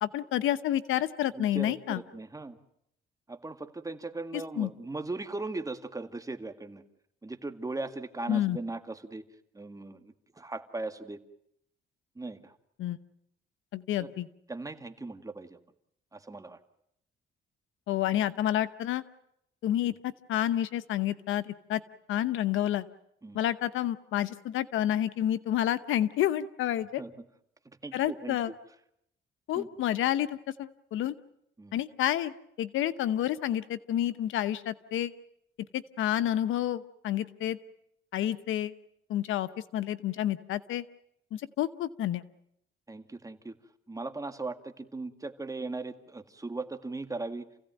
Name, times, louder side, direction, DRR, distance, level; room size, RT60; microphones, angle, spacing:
voice 1, 0.0-2.0 4.3-4.7 8.3-8.6 12.8-13.0 13.7-14.3 17.9-19.0 19.6-19.9 20.3-21.8 22.1-22.8 23.3-27.0 27.9-28.5 29.5-31.1 31.7-35.1 35.7-37.6 38.1-38.7 39.1-40.8 41.3-42.2, left 12 dB, 85° left, 14 dB, 1.0 m, -29 dB
voice 2, 1.3-2.6 3.3-6.8 7.2-9.2 9.5-11.2 12.2-12.6 14.0-14.1 14.5-15.6 16.1-16.6 23.2-23.4 27.0-27.1 27.7-28.5 29.5-29.7 31.6-31.8 42.9-43.6 43.9-47.5, right 3 dB, 15° right, 8 dB, 1.9 m, -38 dB
29.0 x 16.5 x 9.2 m, 0.77 s
cardioid pair, 90°, 20 cm